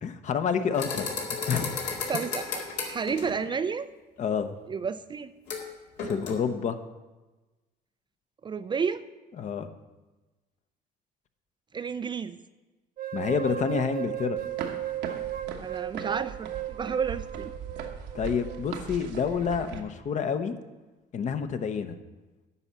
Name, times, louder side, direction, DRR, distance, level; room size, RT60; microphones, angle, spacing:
voice 1, 0.0-1.8 4.2-4.6 6.0-6.8 9.4-9.7 13.1-14.4 18.1-20.6 21.1-22.0, left 6 dB, 45° left, 9 dB, 0.8 m, -28 dB
sound 1, 0.7-3.5 5.5-5.7 6.0-6.3, left 5 dB, 80° left, 2.2 m, -33 dB
voice 2, 2.1-3.9 4.7-5.3 8.4-9.1 11.7-12.4 15.6-17.5, right 6 dB, 30° right, 12 dB, 0.3 m, -31 dB
sound 2, 13.0-19.0, right 13 dB, 55° right, 0.7 m, -36 dB
sound 3, 14.4-19.8, right 6 dB, 80° right, 1.1 m, -40 dB
9.8 x 5.5 x 7.2 m, 1.2 s
cardioid pair, 110°, 17 cm